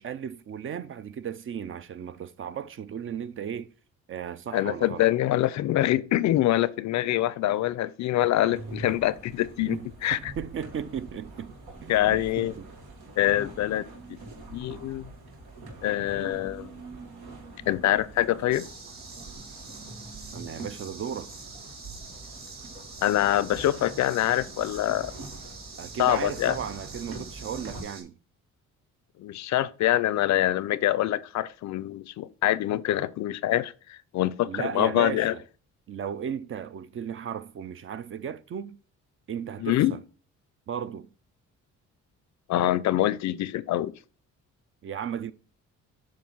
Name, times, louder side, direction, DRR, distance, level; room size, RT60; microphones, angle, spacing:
voice 1, 0.0-3.7 4.1-5.1 9.6-11.6 11.8-12.7 20.3-21.3 25.8-28.2 34.5-35.4 35.9-38.8 39.3-40.0 40.7-41.1 44.8-45.3, right 8 dB, 45° right, 0.5 m, -35 dB
voice 2, 4.5-9.8 10.0-10.3 11.9-12.5 13.2-14.2 14.5-15.1 15.8-16.7 17.7-18.7 23.0-25.1 26.0-26.6 29.2-35.3 39.6-39.9 42.5-43.9, left 14 dB, 65° left, 0.5 m, -25 dB
sound 1, 8.5-27.8, right 2 dB, 90° right, 1.5 m, -44 dB
sound 2, 18.5-28.0, right 3 dB, 70° right, 2.1 m, -45 dB
7.4 x 2.6 x 5.4 m
cardioid pair, 90°, 30 cm